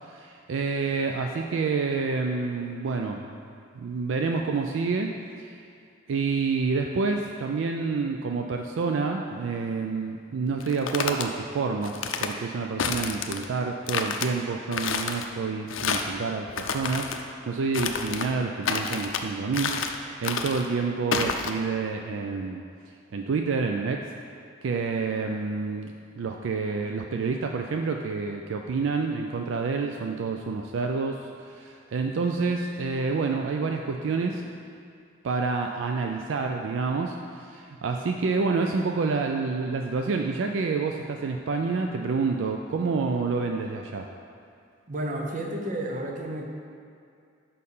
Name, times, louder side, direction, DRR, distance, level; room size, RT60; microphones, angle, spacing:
voice 1, 0.0-3.4 3.7-5.1 5.4-5.6 6.1-22.6 23.1-24.0 24.6-34.4 35.2-44.1, right 4 dB, 70° right, 3 dB, 0.4 m, -28 dB
sound 1, 10.6-11.3 11.8-12.3 12.8-13.5 13.9-14.3 14.7-15.3 15.7-16.2 16.5-17.2 17.7-18.3 18.6-19.2 19.5-20.0 20.2-20.7 21.1-21.5, left 5 dB, 80° left, 0.5 m, -29 dB
voice 2, 44.9-46.6, right 1 dB, 45° right, 1 dB, 0.9 m, -32 dB
6.5 x 5.4 x 5.4 m, 2.3 s
head